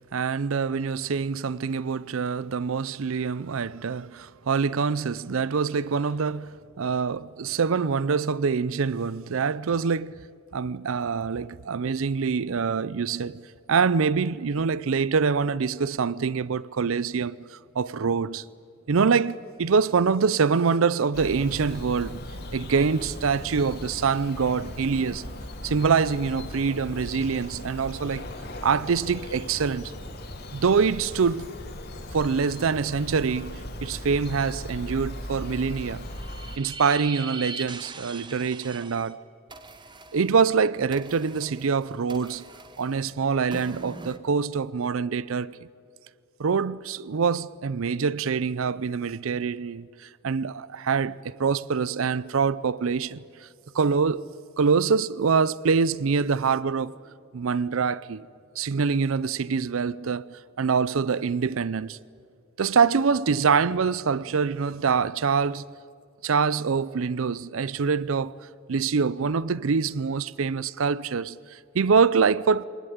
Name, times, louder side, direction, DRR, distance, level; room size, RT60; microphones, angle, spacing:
voice 1, 0.1-10.3 10.5-13.4 13.7-18.4 18.9-22.2 22.5-25.3 25.6-28.3 28.6-29.9 30.5-31.5 32.1-36.1 36.6-39.2 40.1-42.4 42.8-45.6 46.4-53.5 53.7-54.3 54.6-57.0 57.3-58.3 58.6-62.0 62.6-65.6 66.2-68.4 68.7-72.7, right 5 dB, 75° right, 0.5 m, -25 dB
Bird vocalization bird call bird song, 21.1-36.6, left 1 dB, 50° left, 2.6 m, -38 dB
sound 1, 35.9-39.1 39.5-44.2, right 3 dB, 20° right, 1.0 m, -41 dB
24.0 x 20.0 x 9.3 m
head